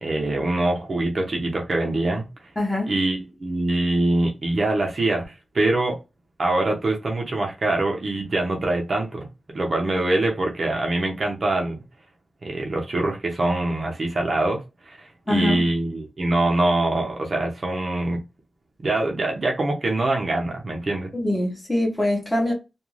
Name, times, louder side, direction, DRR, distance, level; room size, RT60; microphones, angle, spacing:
voice 1, 0.0-2.2 2.9-6.0 6.4-9.3 9.5-11.8 12.4-18.2 18.8-21.1, right 2 dB, 40° right, 0.6 m, -24 dB
voice 2, 2.6-2.9 15.3-15.6 21.1-22.5, left 1 dB, 10° left, 0.8 m, -23 dB
2.4 x 2.3 x 3.0 m
wide cardioid pair, 180°, 0 cm